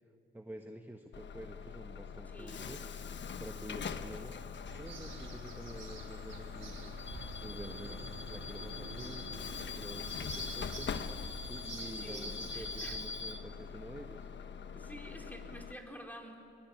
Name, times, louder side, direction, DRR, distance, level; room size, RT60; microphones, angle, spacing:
voice 1, 0.3-2.8 3.4-4.3 4.8-6.9 7.4-9.3 9.7-10.9 11.5-14.3, right 1 dB, 10° right, 5 dB, 1.4 m, -48 dB
Bus / Alarm, 1.1-15.7, left 6 dB, 60° left, 1.2 m, -42 dB
voice 2, 2.3-2.7 12.0-13.0 14.7-16.4, equal, 10° left, 2 dB, 4.4 m, -49 dB
sound 1, 4.6-13.1, right 4 dB, 65° right, 4.5 m, -48 dB
23.5 x 21.5 x 9.5 m, 2.5 s
cardioid pair, 75°, 21 cm